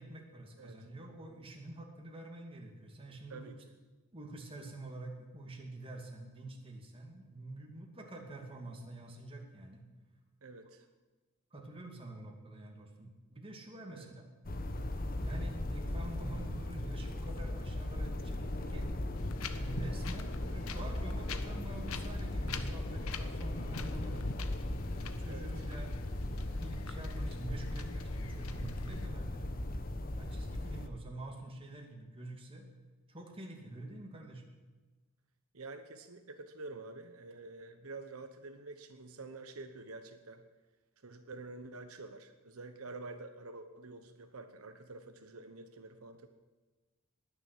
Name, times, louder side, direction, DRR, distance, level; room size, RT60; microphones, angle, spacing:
voice 1, 0.0-3.5 4.1-9.8 11.5-14.3 15.1-18.9 19.5-24.3 24.9-29.8 30.2-32.7 33.1-34.4, right 2 dB, 25° right, 1 dB, 2.5 m, -47 dB
voice 2, 10.4-10.9 13.9-14.1 25.3-25.5 35.5-40.4 41.0-46.3, right 3 dB, 85° right, 8 dB, 1.0 m, -48 dB
sound 1, 14.4-30.9, left 1 dB, 45° left, 1.1 m, -38 dB
Wind, 19.2-29.1, left 4 dB, 80° left, 1.0 m, -46 dB
20.0 x 7.0 x 8.5 m, 1.2 s
head